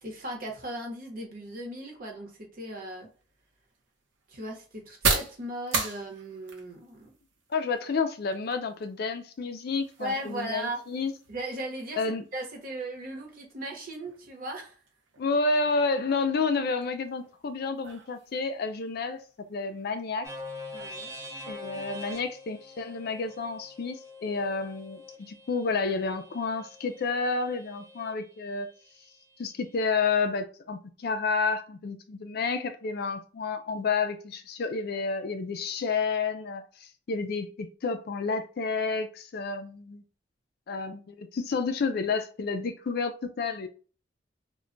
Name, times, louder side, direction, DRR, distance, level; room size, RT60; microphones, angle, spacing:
voice 1, 0.0-3.1 4.3-7.1 10.0-10.8 11.3-12.0 12.3-14.8 20.7-21.1, right 1 dB, 50° right, 0.8 m, -37 dB
sound 1, 2.9-20.5, right 4 dB, 80° right, 0.8 m, -39 dB
voice 2, 7.5-11.1 12.0-12.2 15.2-19.2 19.5-20.3 21.5-28.7 29.4-40.0 40.7-43.7, left 4 dB, 55° left, 0.4 m, -30 dB
sound 2, 20.2-28.1, left 2 dB, 15° right, 0.6 m, -44 dB
2.2 x 2.2 x 3.7 m
head